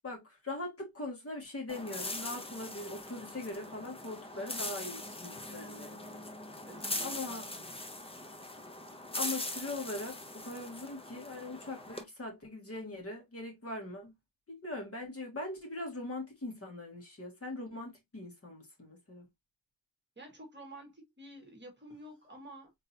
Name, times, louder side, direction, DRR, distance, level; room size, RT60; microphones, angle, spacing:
voice 1, 0.0-6.0 7.0-7.5 9.2-14.1 14.5-19.3, left 2 dB, 30° left, 1.8 m, -41 dB
sound 1, 1.7-12.0, left 2 dB, 15° left, 0.6 m, -41 dB
voice 2, 6.7-7.7 20.2-22.7, right 1 dB, 25° right, 1.5 m, -50 dB
3.9 x 3.7 x 2.7 m
wide cardioid pair, 170°, 44 cm